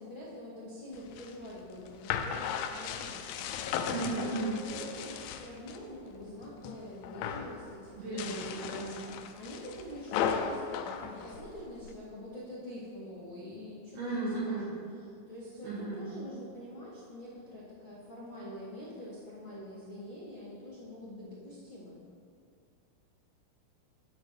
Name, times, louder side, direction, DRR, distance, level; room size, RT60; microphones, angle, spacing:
voice 1, 0.0-3.7 4.0-9.0 9.3-14.7 15.0-22.0, left 1 dB, 55° left, -12 dB, 1.4 m, -45 dB
sound 1, 1.0-5.8 6.2-6.8 7.0-7.6 8.0-11.9, left 7 dB, 85° left, 2.6 m, -36 dB
voice 2, 3.9-4.6 8.0-8.9 14.0-14.7 15.6-16.0, right 3 dB, 75° right, -6 dB, 2.4 m, -35 dB
12.0 x 8.5 x 3.2 m, 2.3 s
omnidirectional pair, 5.9 m